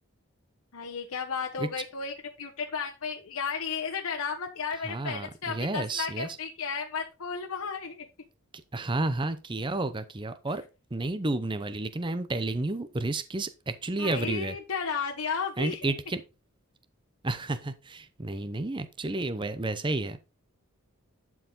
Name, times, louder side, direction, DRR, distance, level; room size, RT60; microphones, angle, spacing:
voice 1, 0.7-8.1 14.0-15.9, left 5 dB, 80° left, 1.1 m, -33 dB
voice 2, 4.8-6.4 8.7-10.6 10.9-14.6 15.6-16.2 17.2-20.2, right 2 dB, 20° right, 0.6 m, -31 dB
11.5 x 4.8 x 3.9 m
head